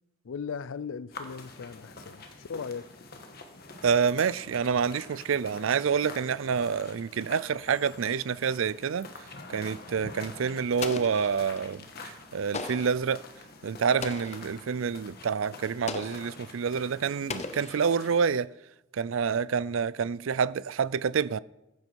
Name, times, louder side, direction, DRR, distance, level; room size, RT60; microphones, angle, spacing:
voice 1, 0.2-3.0, left 6 dB, 70° left, 0.4 m, -38 dB
sound 1, 1.1-18.2, left 3 dB, 50° left, 1.5 m, -47 dB
voice 2, 3.8-9.1 9.5-13.2 13.6-18.5 18.9-21.4, right 6 dB, 75° right, 0.4 m, -28 dB
Explosion, 10.8-11.7 12.5-13.1 14.0-14.6 15.9-16.4 17.3-18.2, left 4 dB, 30° left, 0.7 m, -38 dB
15.0 x 9.7 x 4.7 m
head